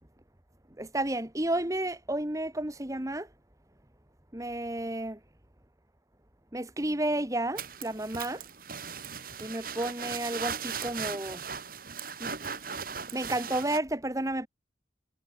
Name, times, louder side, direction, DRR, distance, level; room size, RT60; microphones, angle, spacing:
voice 1, 0.8-3.3 4.3-5.2 6.5-8.4 9.4-11.4 12.2-12.3 13.1-14.5, right 1 dB, 15° right, 1.5 m, -31 dB
sound 1, 7.6-13.8, right 6 dB, 50° right, 5.8 m, -38 dB
head